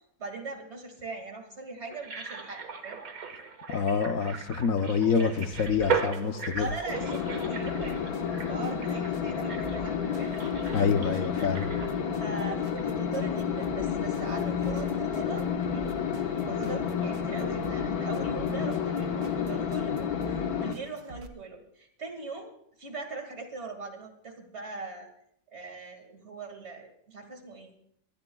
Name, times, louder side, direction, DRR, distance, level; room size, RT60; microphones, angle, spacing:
voice 1, 0.2-3.0 5.2-5.3 6.6-8.2 8.5-10.4 11.3-11.5 12.2-22.5 22.8-25.1 25.5-27.7, right 3 dB, 50° right, 4 dB, 2.3 m, -40 dB
Washing the dishes, 1.9-12.5 12.8-12.9, right 6 dB, 70° right, 1.9 m, -37 dB
voice 2, 3.7-6.7 10.7-11.7, left 6 dB, 65° left, 8 dB, 1.2 m, -26 dB
sound 1, 5.2-21.3, right 4 dB, 90° right, 1.6 m, -47 dB
sound 2, 6.9-20.7, left 7 dB, 85° left, 1.7 m, -30 dB
24.0 x 19.0 x 2.3 m, 0.69 s
omnidirectional pair, 1.5 m